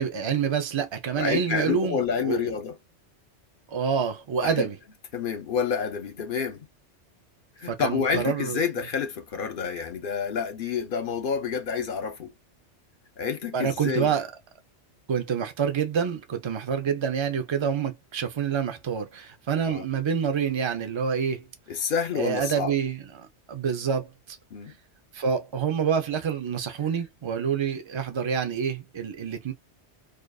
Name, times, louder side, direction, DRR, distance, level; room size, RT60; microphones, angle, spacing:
voice 1, 0.0-2.5 3.7-4.8 7.7-8.6 13.5-14.3 15.1-21.5 22.1-24.4 25.1-29.5, right 7 dB, 45° right, 0.4 m, -27 dB
voice 2, 1.2-2.8 4.4-4.7 5.1-6.7 7.6-12.3 13.2-14.1 19.7-19.9 21.7-22.7 24.5-24.8, left 6 dB, 55° left, 0.7 m, -29 dB
2.4 x 2.4 x 2.3 m
omnidirectional pair, 1.2 m